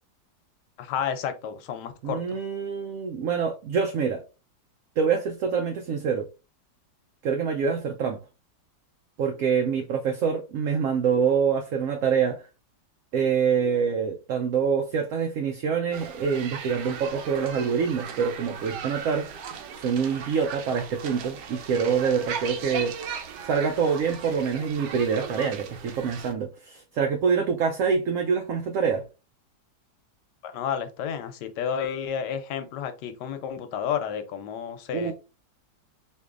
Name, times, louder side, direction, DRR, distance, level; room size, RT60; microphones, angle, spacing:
voice 1, 0.8-2.4 30.4-35.1, left 8 dB, 85° left, 1.2 m, -31 dB
voice 2, 2.0-4.2 5.0-6.3 7.2-8.2 9.2-12.4 13.1-19.3 19.8-23.0 23.4-29.0 34.9-35.1, right 6 dB, 70° right, 0.8 m, -25 dB
sound 1, 15.9-26.3, right 7 dB, 85° right, 1.3 m, -38 dB
4.4 x 2.6 x 2.4 m
omnidirectional pair, 1.8 m